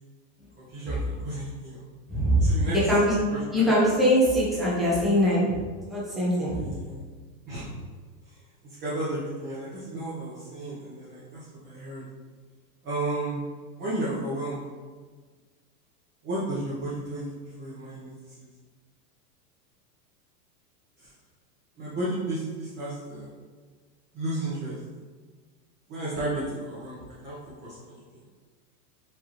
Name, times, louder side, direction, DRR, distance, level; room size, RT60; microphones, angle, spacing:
voice 1, 0.5-1.8 2.4-3.0 3.3-3.7 6.5-7.0 7.5-7.7 8.2-12.0 12.8-13.4 13.8-14.6 16.2-18.5 21.0-21.1 21.8-23.3 24.1-24.8 25.9-28.2, right 1 dB, 25° right, -9 dB, 0.8 m, -33 dB
voice 2, 2.1-3.2 3.5-5.6 5.9-6.7, equal, ahead, -8 dB, 0.3 m, -22 dB
4.7 x 2.8 x 3.0 m, 1.5 s
supercardioid pair, 140°, 47 cm